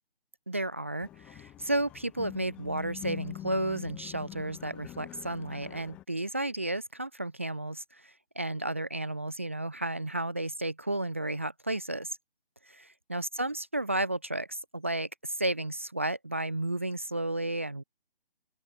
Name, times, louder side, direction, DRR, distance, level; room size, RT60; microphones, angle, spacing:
voice 1, 0.5-12.2 12.7-17.8, right 1 dB, 15° right, 0.8 m, -33 dB
sound 1, 1.0-6.0, left 13 dB, 5° left, 1.4 m, -44 dB
open air
hypercardioid pair, 175°, 30 cm